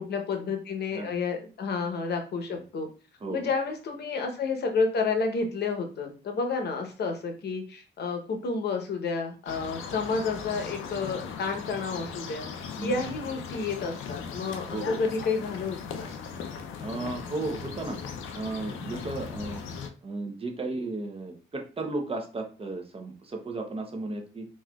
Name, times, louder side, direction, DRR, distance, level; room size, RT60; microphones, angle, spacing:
voice 1, 0.0-2.9 3.3-12.5 12.8-16.1, left 4 dB, 55° left, 4 dB, 0.9 m, -30 dB
sound 1, 9.5-19.9, left 6 dB, 80° left, 0.5 m, -38 dB
voice 2, 14.7-15.0 16.8-18.0 18.3-19.6 20.0-24.5, right 2 dB, 30° right, 3 dB, 0.7 m, -34 dB
4.1 x 2.4 x 2.3 m, 0.35 s
cardioid pair, 90°, 20 cm